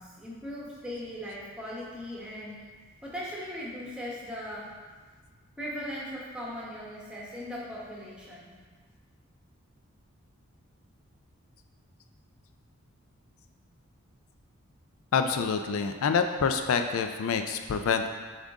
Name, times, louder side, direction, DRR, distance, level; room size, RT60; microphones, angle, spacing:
voice 1, 0.0-2.6 3.0-4.7 5.6-8.5, equal, 5° right, -6 dB, 1.1 m, -39 dB
voice 2, 15.1-18.1, left 5 dB, 70° left, 7 dB, 0.4 m, -27 dB
7.4 x 3.7 x 3.6 m, 1.5 s
head